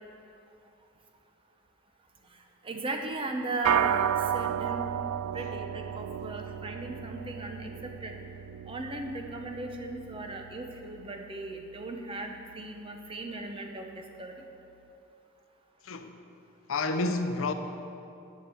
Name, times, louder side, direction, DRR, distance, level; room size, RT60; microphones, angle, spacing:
voice 1, 2.6-4.9 5.3-8.1 8.7-14.3, right 2 dB, 25° right, 0.7 m, -37 dB
sound 1, 3.6-13.2, right 10 dB, 85° right, 0.3 m, -34 dB
voice 2, 15.8-16.2 16.7-17.5, left 3 dB, 65° left, 0.6 m, -29 dB
9.5 x 7.2 x 7.0 m
head